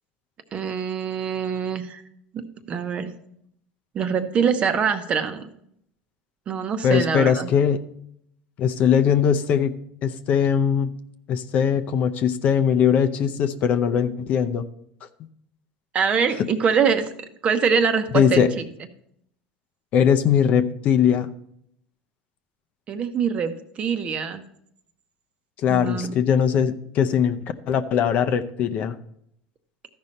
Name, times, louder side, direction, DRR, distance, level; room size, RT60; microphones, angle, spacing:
voice 1, 0.5-2.0 2.3-3.1 3.9-5.5 6.5-7.5 15.9-17.1 17.4-18.4 22.9-24.4 25.7-26.1, right 6 dB, 40° right, 8 dB, 0.9 m, -24 dB
voice 2, 6.8-7.8 8.6-9.7 10.0-10.9 11.3-14.6 18.1-18.5 19.9-21.3 25.6-27.4 27.7-28.9, left 8 dB, 50° left, 8 dB, 0.6 m, -20 dB
13.5 x 5.3 x 4.2 m, 0.72 s
supercardioid pair, 105°, 3 cm